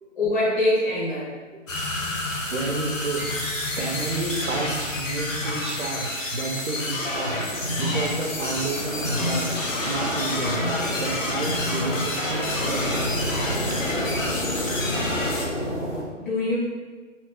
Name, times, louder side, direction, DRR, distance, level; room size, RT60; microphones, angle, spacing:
voice 1, 0.2-1.3 16.2-16.6, left 1 dB, 35° left, -10 dB, 1.5 m, -23 dB
sound 1, 1.7-15.4, left 2 dB, 80° left, 0.9 m, -29 dB
voice 2, 2.5-13.0 13.4-14.2, right 3 dB, 65° right, 1 dB, 0.7 m, -31 dB
sound 2, 6.8-16.0, left 1 dB, 5° left, 1.0 m, -29 dB
3.0 x 2.3 x 3.4 m, 1.4 s
hypercardioid pair, 165°, 38 cm